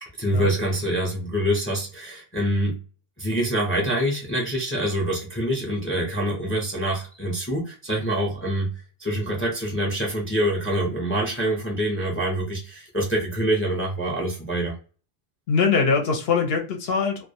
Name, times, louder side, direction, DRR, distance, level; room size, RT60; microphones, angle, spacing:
voice 1, 0.0-2.8 3.2-8.7 9.0-14.7, right 1 dB, 20° left, -1 dB, 0.3 m, -25 dB
voice 2, 15.5-17.3, left 5 dB, 65° left, 3 dB, 0.7 m, -22 dB
2.2 x 2.1 x 2.7 m, 0.36 s
omnidirectional pair, 1.2 m